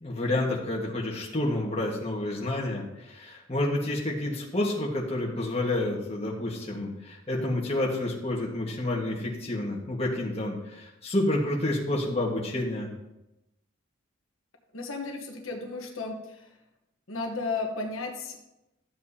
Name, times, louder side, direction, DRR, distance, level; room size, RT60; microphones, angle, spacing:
voice 1, 0.0-12.9, left 1 dB, 30° left, -2 dB, 1.6 m, -29 dB
voice 2, 14.7-16.5 17.1-18.4, left 3 dB, 80° left, 2 dB, 1.2 m, -34 dB
13.0 x 7.5 x 2.8 m, 0.92 s
head